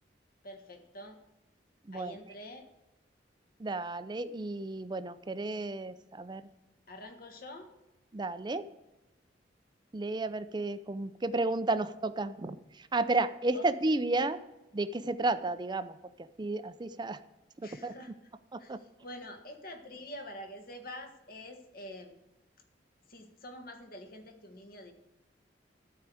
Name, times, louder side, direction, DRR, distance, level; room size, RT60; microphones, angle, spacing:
voice 1, 0.4-1.2 1.9-2.6 6.9-7.7 13.5-13.7 17.6-18.1 18.6-22.2 23.1-24.9, left 1 dB, 50° left, 5 dB, 1.5 m, -46 dB
voice 2, 1.9-2.2 3.6-6.4 8.1-8.6 9.9-14.4 14.7-17.2 17.6-17.9 18.5-18.8, right 2 dB, 25° right, 12 dB, 0.5 m, -32 dB
12.0 x 4.7 x 7.8 m, 1.0 s
head